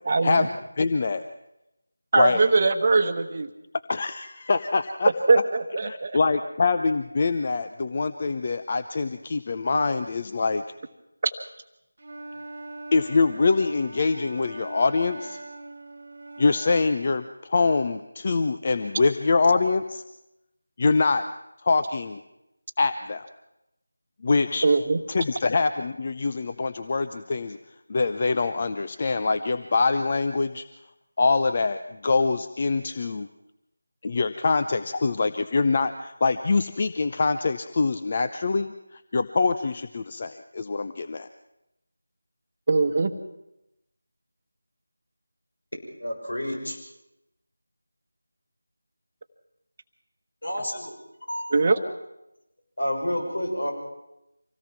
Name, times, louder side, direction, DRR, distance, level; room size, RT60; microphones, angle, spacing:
voice 1, 0.1-0.5 2.1-3.5 5.3-6.2 11.2-11.3 24.6-25.0 42.7-43.1 51.5-51.8, right 3 dB, 35° right, 7 dB, 1.1 m, -21 dB
voice 2, 0.8-1.2 2.2-2.4 3.9-5.1 5.9-10.6 12.9-15.4 16.4-20.0 20.8-21.2 21.6-22.2 22.8-23.3 24.2-24.7 25.1-27.6 27.9-30.6 31.2-33.3 34.0-41.3, left 4 dB, 35° left, 9 dB, 0.6 m, -24 dB
Wind instrument woodwind instrument, 12.0-17.2, right 2 dB, 50° right, 0.9 m, -40 dB
voice 3, 46.0-46.8 50.4-50.9 51.3-51.5 52.8-53.7, equal, 70° left, 2 dB, 6.4 m, -29 dB
25.5 x 17.5 x 5.9 m, 0.89 s
figure-of-eight pair, 165°, 0 cm